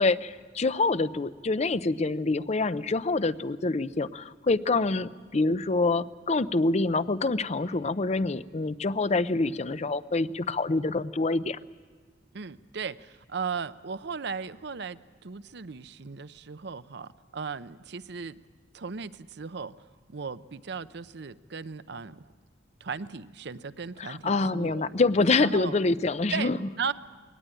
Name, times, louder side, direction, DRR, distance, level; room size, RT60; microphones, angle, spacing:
voice 1, 0.0-11.6 24.0-26.6, left 3 dB, 35° left, 15 dB, 0.6 m, -26 dB
voice 2, 12.3-18.4 18.7-19.7 20.1-22.2 22.8-24.9 25.4-25.7 26.3-26.9, right 5 dB, 60° right, 14 dB, 0.6 m, -36 dB
22.0 x 18.5 x 9.0 m, 1.5 s
head